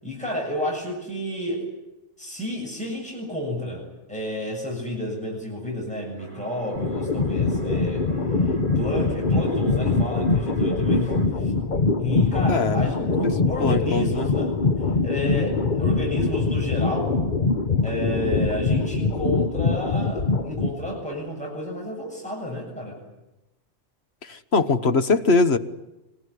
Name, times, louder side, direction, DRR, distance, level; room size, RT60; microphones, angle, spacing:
voice 1, 0.0-1.7 2.2-11.5 12.0-17.2 17.8-23.0, left 1 dB, 5° left, -2 dB, 7.5 m, -31 dB
sound 1, 6.2-11.3, equal, 60° right, 5.1 m, -43 dB
sound 2, 6.8-21.0, left 3 dB, 40° left, 1.2 m, -23 dB
voice 2, 12.5-13.3 13.6-14.3 15.2-15.5 24.2-25.6, left 3 dB, 60° left, 9 dB, 1.5 m, -22 dB
25.0 x 20.5 x 9.8 m, 0.97 s
omnidirectional pair, 1.3 m